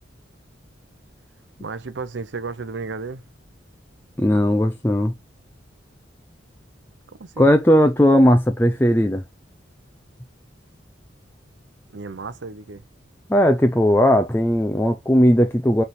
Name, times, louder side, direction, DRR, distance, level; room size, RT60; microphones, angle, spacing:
voice 1, 1.6-3.2 7.2-7.5 11.9-12.8, right 4 dB, 75° right, 0.7 m, -33 dB
voice 2, 4.2-5.1 7.4-9.2 13.3-15.8, equal, 10° left, 0.5 m, -17 dB
8.5 x 3.4 x 4.2 m
head